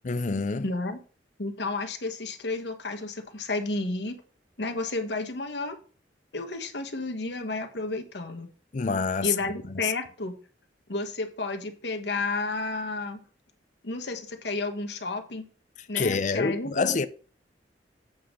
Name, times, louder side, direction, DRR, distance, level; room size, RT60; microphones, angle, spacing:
voice 1, 0.0-0.7 8.7-9.4 9.7-9.9 15.9-17.1, left 4 dB, 45° left, 0.5 m, -27 dB
voice 2, 0.6-1.0 1.4-4.2 4.6-5.8 6.3-8.5 9.2-10.4 10.9-13.2 13.8-15.4 15.9-17.0, left 3 dB, 75° left, 1.3 m, -31 dB
8.1 x 3.8 x 6.4 m
head